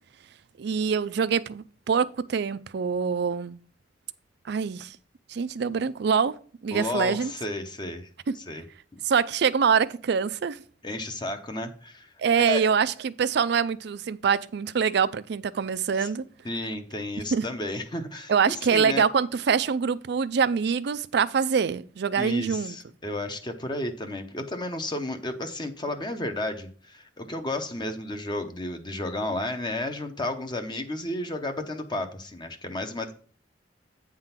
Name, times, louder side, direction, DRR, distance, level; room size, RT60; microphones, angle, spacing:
voice 1, 0.6-3.6 4.5-5.0 5.3-6.4 6.6-7.3 8.3-8.4 9.1-10.6 12.2-16.2 17.3-17.4 18.3-22.8, right 6 dB, 65° right, 0.4 m, -25 dB
voice 2, 6.7-8.1 8.3-8.6 8.9-9.0 10.8-12.7 16.0-16.1 16.4-19.0 22.2-33.1, left 1 dB, 25° left, 0.8 m, -32 dB
8.8 x 3.7 x 5.8 m
head